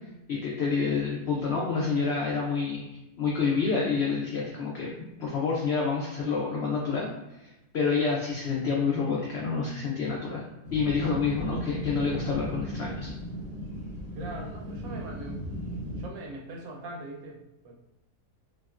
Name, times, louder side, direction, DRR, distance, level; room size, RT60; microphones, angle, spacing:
voice 1, 0.3-2.9 3.2-7.1 7.4-10.5 10.7-13.1, left 5 dB, 90° left, -3 dB, 0.5 m, -28 dB
sound 1, 10.6-16.0, equal, 25° right, 0.7 m, -36 dB
voice 2, 14.1-17.7, right 2 dB, 75° right, 0 dB, 1.0 m, -42 dB
3.5 x 2.1 x 2.3 m, 0.94 s
omnidirectional pair, 1.7 m